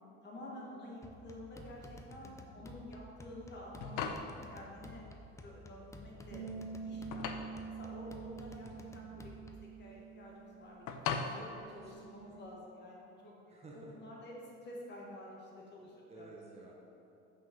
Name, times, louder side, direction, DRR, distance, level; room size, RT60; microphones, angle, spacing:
voice 1, 0.2-5.0 5.4-7.3 7.7-9.3 9.6-16.3, left 1 dB, 35° left, -3 dB, 1.6 m, -50 dB
sound 1, 1.0-9.8, left 1 dB, 10° left, 0.3 m, -53 dB
sound 2, 3.5-12.5, left 6 dB, 90° left, 0.7 m, -43 dB
voice 2, 6.3-6.7 11.8-12.4 13.5-14.0 15.8-16.7, right 2 dB, 20° right, -2 dB, 0.8 m, -55 dB
sound 3, 6.3-12.6, right 5 dB, 70° right, 1.0 m, -47 dB
6.1 x 5.8 x 5.2 m, 2.9 s
cardioid pair, 150°, 29 cm